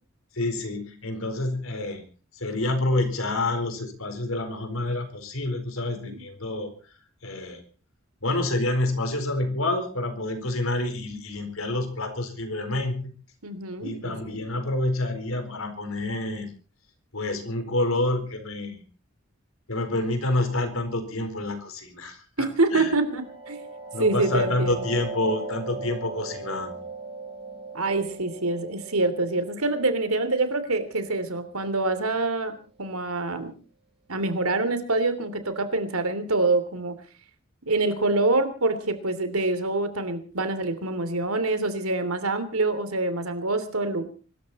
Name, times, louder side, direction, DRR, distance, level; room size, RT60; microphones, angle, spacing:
voice 1, 0.3-2.0 2.3-6.7 7.2-7.6 8.2-13.1 13.8-16.5 17.1-18.8 19.7-22.9 23.9-26.8, left 2 dB, 75° left, 7 dB, 4.4 m, -28 dB
voice 2, 5.9-6.2 13.4-14.2 22.4-23.6 24.0-25.0 27.7-32.5 32.8-33.5 34.1-36.9 37.7-44.1, right 2 dB, 90° right, 10 dB, 3.1 m, -26 dB
sound 1, 22.8-32.3, right 3 dB, 25° right, 6.2 m, -39 dB
24.5 x 13.5 x 4.3 m, 0.37 s
head